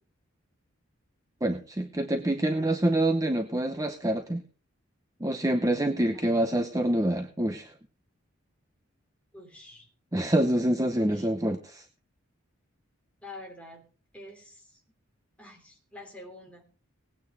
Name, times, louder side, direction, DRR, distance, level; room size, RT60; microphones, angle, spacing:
voice 1, 1.4-4.4 5.2-7.7 10.1-11.8, right 1 dB, 15° right, 6 dB, 0.7 m, -26 dB
voice 2, 9.3-9.9 11.0-11.3 13.2-13.8 14.1-14.8 15.4-16.6, left 2 dB, 5° left, 0 dB, 3.0 m, -46 dB
18.5 x 9.0 x 4.0 m, 0.37 s
head